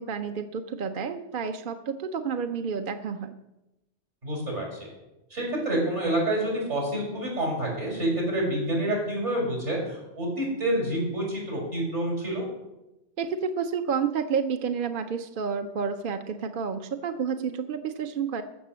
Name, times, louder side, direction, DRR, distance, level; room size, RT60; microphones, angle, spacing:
voice 1, 0.0-3.4 13.2-18.4, right 6 dB, 55° right, 7 dB, 0.8 m, -30 dB
voice 2, 4.2-4.9 5.3-12.5, right 1 dB, 75° right, -3 dB, 5.8 m, -28 dB
14.5 x 5.9 x 7.4 m, 0.95 s
omnidirectional pair, 1.2 m